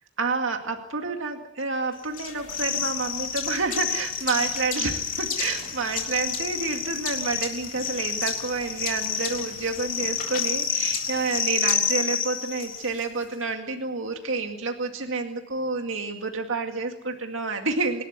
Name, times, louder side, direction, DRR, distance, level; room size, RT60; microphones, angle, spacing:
voice 1, 0.2-18.0, right 3 dB, 70° right, 4 dB, 2.2 m, -29 dB
sound 1, 2.1-13.0, left 7 dB, 45° left, 3.7 m, -29 dB
27.5 x 13.0 x 9.5 m, 0.91 s
head